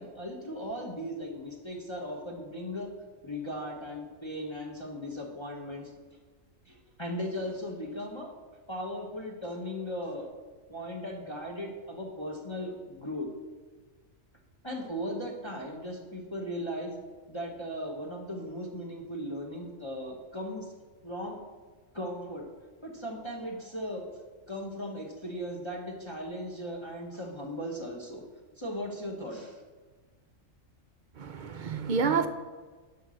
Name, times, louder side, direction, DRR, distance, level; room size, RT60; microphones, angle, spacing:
voice 1, 0.0-2.9 3.2-5.9 6.6-8.3 8.7-10.3 10.7-13.3 14.6-17.0 17.3-20.7 21.0-21.4 21.9-22.4 22.8-24.1 24.5-28.2 28.6-29.6, equal, 20° left, -1 dB, 1.1 m, -37 dB
voice 2, 31.2-32.3, right 5 dB, 50° right, 8 dB, 0.6 m, -28 dB
11.0 x 4.7 x 6.2 m, 1.4 s
omnidirectional pair, 1.4 m